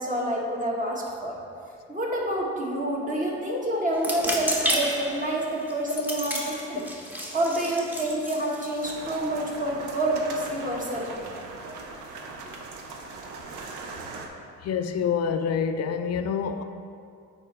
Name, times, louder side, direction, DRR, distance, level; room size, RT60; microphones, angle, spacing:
voice 1, 0.0-1.4 1.9-6.8 7.3-11.3, right 1 dB, 25° right, -3 dB, 1.5 m, -28 dB
sound 1, 3.9-9.3, equal, 5° right, 0.9 m, -32 dB
sound 2, 8.8-14.3, right 3 dB, 80° right, 0.8 m, -39 dB
voice 2, 14.6-16.6, left 7 dB, 55° left, 8 dB, 0.5 m, -27 dB
8.8 x 4.3 x 3.4 m, 2.4 s
cardioid pair, 90°, 30 cm